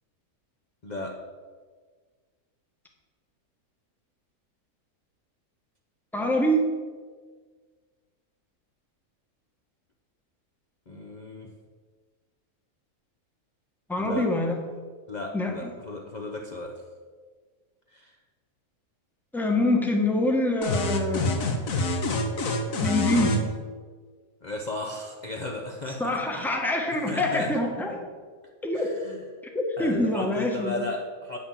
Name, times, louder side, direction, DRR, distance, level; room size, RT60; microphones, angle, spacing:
voice 1, 0.8-1.2 10.9-11.5 14.0-14.3 15.1-16.8 17.9-18.1 24.4-26.1 26.9-27.5 28.7-29.2 29.8-31.4, left 2 dB, 35° left, 0 dB, 0.9 m, -35 dB
voice 2, 6.1-6.6 13.9-14.6 15.3-15.7 19.3-21.3 22.8-23.4 26.0-28.0 28.6-28.9 29.5-30.8, left 1 dB, ahead, 1 dB, 1.2 m, -25 dB
sound 1, 20.6-23.4, left 2 dB, 65° left, 1.5 m, -26 dB
8.9 x 6.5 x 7.3 m, 1.5 s
omnidirectional pair, 1.6 m